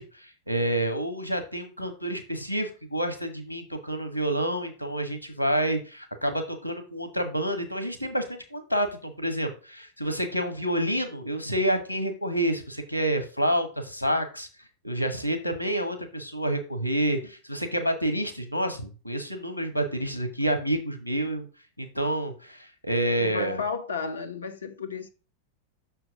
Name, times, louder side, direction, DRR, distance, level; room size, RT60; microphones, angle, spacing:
voice 1, 0.0-14.5 14.8-21.5 21.8-23.6, right 1 dB, 90° right, 1.4 m, -28 dB
voice 2, 23.2-25.1, left 4 dB, 75° left, 1.1 m, -33 dB
6.3 x 4.4 x 6.3 m
figure-of-eight pair, 90°, 0 cm